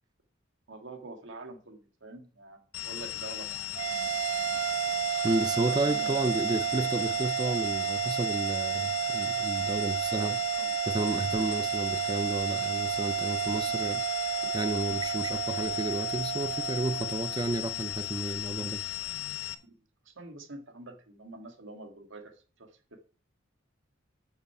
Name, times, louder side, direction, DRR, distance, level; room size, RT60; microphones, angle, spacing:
voice 1, 0.7-3.9 4.5-4.6 5.6-6.4 10.5-10.7 19.6-23.1, right 2 dB, 65° right, 1.8 m, -46 dB
sound 1, 2.7-19.5, left 14 dB, 90° left, 0.8 m, -37 dB
sound 2, 3.7-18.3, right 11 dB, 85° right, 0.4 m, -32 dB
voice 2, 5.2-10.4 10.9-18.8, right 2 dB, 20° right, 0.4 m, -32 dB
8.6 x 6.7 x 4.7 m
head